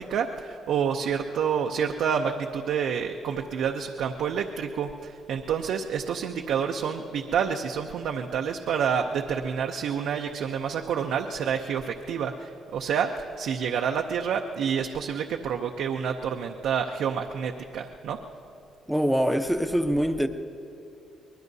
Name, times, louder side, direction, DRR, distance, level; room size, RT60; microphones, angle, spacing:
voice 1, 0.0-18.2, right 7 dB, 80° right, 0.6 m, -28 dB
voice 2, 18.9-20.3, equal, ahead, 0.8 m, -24 dB
24.0 x 20.0 x 2.7 m
cardioid pair, 90°, 0 cm